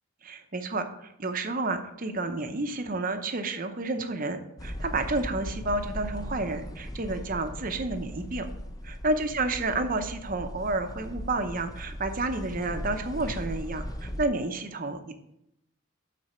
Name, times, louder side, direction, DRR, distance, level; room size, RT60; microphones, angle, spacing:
voice 1, 0.2-8.5 8.8-15.1, right 2 dB, 40° right, 8 dB, 0.7 m, -30 dB
sound 1, 4.6-14.3, equal, 15° left, 0.5 m, -38 dB
12.0 x 4.2 x 4.3 m, 0.79 s
head